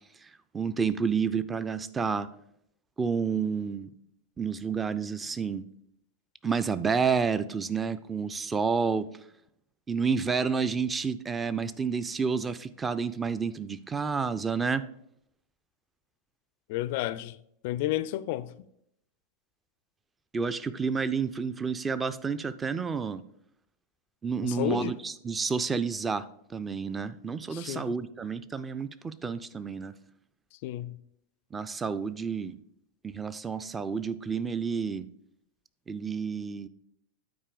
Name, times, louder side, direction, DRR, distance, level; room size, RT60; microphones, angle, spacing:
voice 1, 0.2-2.3 3.0-3.9 4.4-5.7 6.4-9.1 9.9-14.8 20.3-23.2 24.2-29.9 31.5-32.6 33.0-35.1 35.9-36.7, right 5 dB, 15° right, 0.4 m, -30 dB
voice 2, 16.7-17.4 17.6-18.5 24.4-25.0 27.5-27.9 30.6-31.0, left 14 dB, 50° left, 0.4 m, -31 dB
8.8 x 4.5 x 5.0 m
figure-of-eight pair, 90°, 0 cm